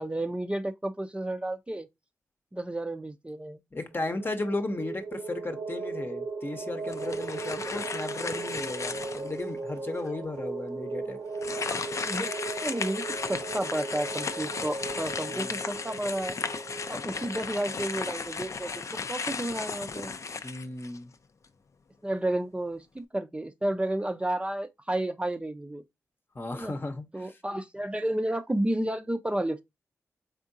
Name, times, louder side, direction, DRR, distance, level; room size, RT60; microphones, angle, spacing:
voice 1, 0.0-1.9 2.5-3.6 7.7-7.8 11.7-11.8 12.0-12.3 12.6-13.0 13.3-16.4 16.9-20.1 22.0-25.8 26.5-26.7 27.1-29.6, right 1 dB, 15° right, 0.6 m, -31 dB
voice 2, 3.7-11.2 15.2-15.5 20.4-21.1 26.3-27.4, left 2 dB, 35° left, 0.9 m, -35 dB
sound 1, 3.9-18.3, right 3 dB, 90° right, 1.2 m, -37 dB
sound 2, 6.9-9.4 10.0-10.1 11.3-21.1, left 5 dB, 50° left, 0.5 m, -35 dB
3.7 x 3.5 x 2.6 m
supercardioid pair, 40°, 6 cm